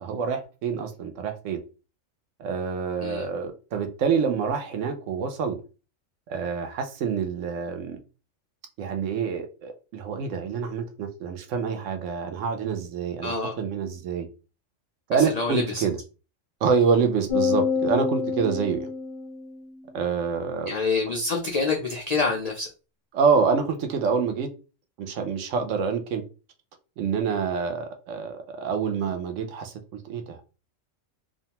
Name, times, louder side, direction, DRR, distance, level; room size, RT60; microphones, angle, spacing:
voice 1, 0.0-1.6 2.4-5.6 6.3-8.0 8.8-14.3 15.1-16.0 16.6-18.9 19.9-20.7 23.1-24.5 25.0-26.2 27.0-30.4, right 6 dB, 75° right, 6 dB, 1.0 m, -27 dB
voice 2, 13.2-13.6 15.1-15.8 20.7-22.7, left 4 dB, 85° left, 1 dB, 0.3 m, -27 dB
sound 1, 17.3-19.8, left 6 dB, 25° right, 0.8 m, -27 dB
2.6 x 2.2 x 2.8 m, 0.32 s
omnidirectional pair, 1.3 m